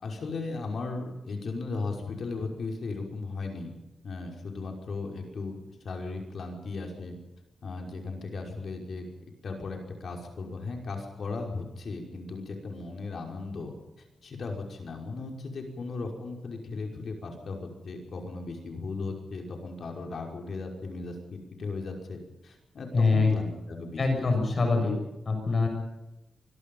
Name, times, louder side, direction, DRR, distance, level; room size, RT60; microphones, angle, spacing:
voice 1, 0.0-3.8 4.0-5.6 5.8-7.2 7.6-9.1 9.4-24.3, left 3 dB, 60° left, 2 dB, 5.5 m, -37 dB
voice 2, 22.9-23.4 24.0-24.9 25.2-25.7, left 3 dB, 40° left, 4 dB, 6.8 m, -24 dB
25.0 x 22.0 x 5.6 m, 0.97 s
wide cardioid pair, 120°, 0 cm